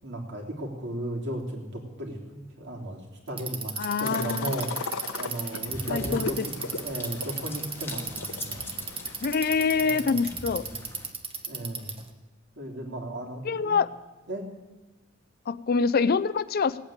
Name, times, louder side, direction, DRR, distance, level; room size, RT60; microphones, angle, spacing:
voice 1, 0.0-8.6 9.7-10.2 11.5-12.0 12.6-13.7 14.3-14.5, right 1 dB, 55° right, 0 dB, 3.1 m, -35 dB
Bicycle, 3.3-12.1, right 5 dB, 25° right, 1.2 m, -35 dB
voice 2, 3.8-4.5 5.9-6.5 9.2-10.7 13.4-13.9 15.5-16.8, left 5 dB, 45° left, 15 dB, 0.4 m, -25 dB
sound 1, 4.0-9.1, left 3 dB, 80° left, 1.0 m, -38 dB
sound 2, 5.6-11.1, left 1 dB, 10° left, 1.3 m, -42 dB
17.5 x 8.8 x 8.8 m, 1.1 s
head